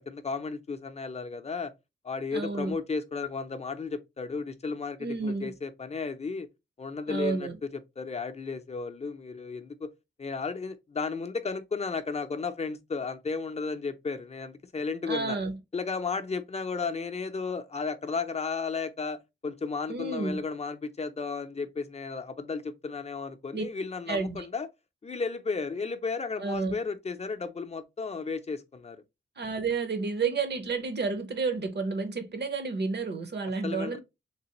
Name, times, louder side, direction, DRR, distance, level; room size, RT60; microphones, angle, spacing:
voice 1, 0.0-1.7 2.0-6.5 6.8-9.9 10.2-15.4 15.7-24.7 25.0-29.0 33.6-34.0, left 4 dB, 35° left, 0.5 m, -34 dB
voice 2, 2.3-2.8 5.0-5.5 7.1-7.6 15.1-15.6 19.9-20.4 23.5-23.6 24.1-24.5 26.4-26.7 29.4-34.0, right 4 dB, 60° right, 0.8 m, -31 dB
3.3 x 3.1 x 2.9 m
wide cardioid pair, 110°, 20 cm